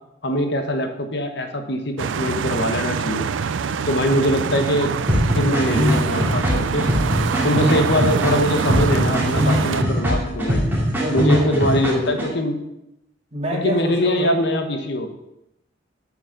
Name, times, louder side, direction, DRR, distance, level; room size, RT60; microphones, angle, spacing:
voice 1, 0.2-3.3 3.9-4.9 5.3-6.8 7.4-10.7 11.1-12.7 13.5-15.1, left 1 dB, 65° left, 6 dB, 1.1 m, -22 dB
sound 1, 2.0-9.8, right 6 dB, 85° right, 0.5 m, -25 dB
sound 2, 5.1-12.3, equal, 10° right, 2.5 m, -21 dB
voice 2, 10.7-12.2 13.3-14.4, equal, 35° right, -4 dB, 3.0 m, -27 dB
8.8 x 6.4 x 6.7 m, 0.87 s
head